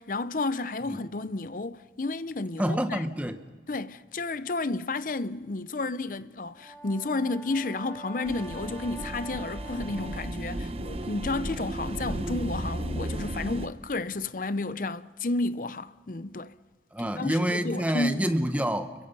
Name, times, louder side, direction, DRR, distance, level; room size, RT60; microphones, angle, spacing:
voice 1, 0.0-3.0 3.7-16.5 17.0-18.3, left 2 dB, 50° left, 0.6 m, -32 dB
voice 2, 2.6-3.4 16.9-18.9, equal, 10° right, 1.0 m, -27 dB
Brass instrument, 6.4-10.7, right 2 dB, 10° left, 2.6 m, -45 dB
sound 1, 8.3-13.7, right 1 dB, 35° right, 0.9 m, -34 dB
30.0 x 22.5 x 5.4 m
head